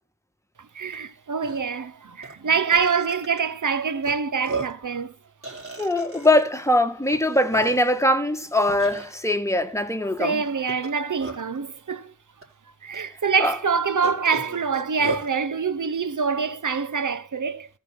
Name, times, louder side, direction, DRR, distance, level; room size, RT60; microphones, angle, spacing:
voice 1, 0.7-5.1 10.2-12.1 12.8-17.7, right 5 dB, 65° right, 1.0 m, -25 dB
Burping eructation, 0.9-1.0 1.4-1.6 2.2-2.3 2.7-3.4 4.0-4.1 4.4-4.9 5.4-6.4 7.1-7.2 7.5-8.1 8.8-9.2 10.7-11.6 12.4-12.5 12.9-13.0 14.0-15.3, right 3 dB, 40° right, 4.7 m, -33 dB
voice 2, 5.8-10.4 13.4-13.5, left 1 dB, 10° left, 1.6 m, -22 dB
14.0 x 5.6 x 7.2 m
cardioid pair, 45°, 33 cm